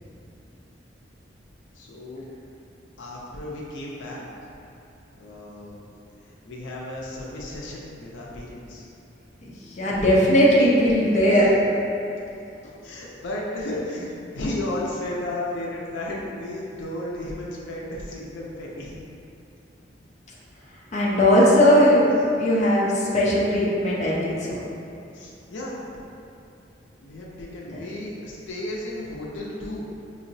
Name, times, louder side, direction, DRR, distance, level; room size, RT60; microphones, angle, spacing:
voice 1, 1.7-2.4 3.0-4.3 5.2-5.8 6.2-8.9 9.8-10.1 11.7-11.8 12.8-19.0 25.1-26.0 27.0-29.8, left 1 dB, 90° left, -4 dB, 0.5 m, -34 dB
voice 2, 9.4-11.4 20.9-24.6 27.7-27.8, equal, 40° left, -5 dB, 0.6 m, -19 dB
5.4 x 2.0 x 2.6 m, 2.6 s
head